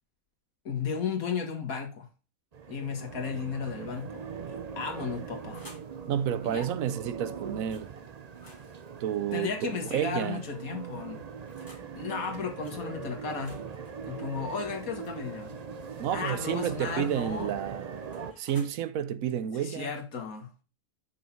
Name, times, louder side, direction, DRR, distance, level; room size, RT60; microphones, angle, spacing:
voice 1, 0.7-2.1 2.7-4.2 4.5-5.6 6.4-6.7 9.3-11.2 11.9-13.6 14.0-15.5 16.1-17.5 19.5-20.5, left 6 dB, 75° left, 1.9 m, -34 dB
sound 1, 2.5-18.3, right 6 dB, 45° right, 0.5 m, -41 dB
sound 2, 5.2-6.0 7.7-7.9 8.2-10.1 10.9-11.9 12.6-12.8 13.2-15.9 17.1-18.7, left 1 dB, 15° left, 2.1 m, -55 dB
voice 2, 6.1-7.9 9.0-10.4 16.0-18.0 18.4-19.9, right 9 dB, 75° right, 1.0 m, -30 dB
6.2 x 5.5 x 4.4 m
omnidirectional pair, 1.5 m